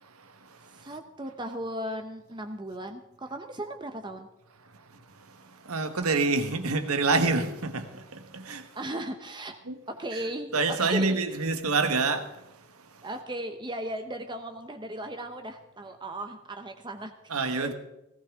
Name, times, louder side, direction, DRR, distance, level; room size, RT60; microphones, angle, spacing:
voice 1, 0.0-0.9 4.6-8.8 9.6-9.8 10.1-10.2 10.5-13.1 17.3-17.7, right 3 dB, 90° right, 1.4 m, -28 dB
voice 2, 0.8-4.3 8.7-9.6 9.9-11.2 13.0-17.1 17.6-17.7, right 1 dB, 20° right, 0.9 m, -36 dB
18.0 x 16.0 x 3.7 m
head